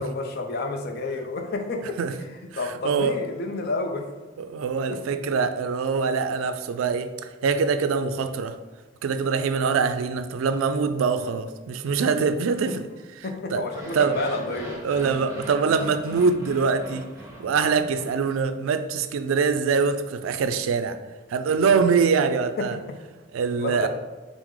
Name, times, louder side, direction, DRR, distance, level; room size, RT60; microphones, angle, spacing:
voice 1, 0.0-2.0 2.5-4.1 4.9-5.0 12.2-12.3 13.2-14.8 22.6-23.0 23.6-23.9, left 3 dB, 50° left, 0.5 m, -30 dB
voice 2, 2.8-3.2 4.4-7.1 7.4-8.6 9.0-12.8 13.5-13.6 13.9-14.2 14.8-17.0 17.4-21.0 21.3-22.8 23.3-23.9, right 5 dB, 85° right, 0.3 m, -23 dB
sound 1, 13.6-18.8, equal, 15° right, 0.8 m, -40 dB
4.6 x 2.0 x 3.6 m
head